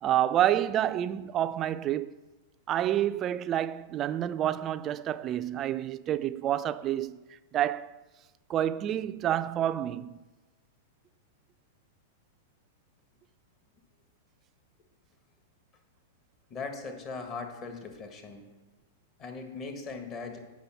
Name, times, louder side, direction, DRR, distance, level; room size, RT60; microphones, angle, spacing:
voice 1, 0.0-2.2 2.7-7.2 7.5-8.0 8.5-10.2, right 11 dB, 35° right, 0.3 m, -28 dB
voice 2, 16.5-18.5 19.2-20.4, left 4 dB, 35° left, 1.5 m, -39 dB
8.2 x 6.1 x 5.8 m
hypercardioid pair, 115°, 0 cm